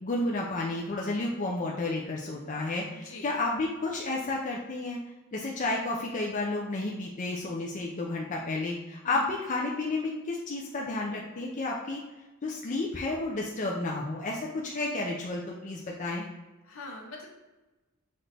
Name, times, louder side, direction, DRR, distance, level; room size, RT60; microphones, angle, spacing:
voice 1, 0.0-5.0 5.3-12.0 12.4-16.3, left 2 dB, 35° left, -2 dB, 0.4 m, -31 dB
voice 2, 2.9-3.3 9.0-9.2 16.6-17.3, left 2 dB, 70° left, 1 dB, 0.9 m, -43 dB
5.9 x 2.6 x 3.3 m, 1.1 s
head